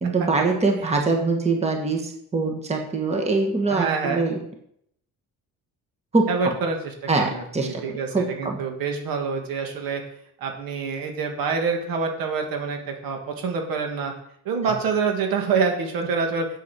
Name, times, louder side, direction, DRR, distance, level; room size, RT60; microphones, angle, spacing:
voice 1, 0.0-4.4 6.1-6.3 7.1-7.7 8.1-8.6, right 3 dB, 20° right, 2 dB, 1.5 m, -23 dB
voice 2, 3.7-4.3 6.3-10.0 10.4-14.1 14.4-16.5, right 5 dB, 85° right, 3 dB, 2.4 m, -26 dB
8.3 x 8.2 x 6.2 m, 0.72 s
cardioid pair, 170°, 34 cm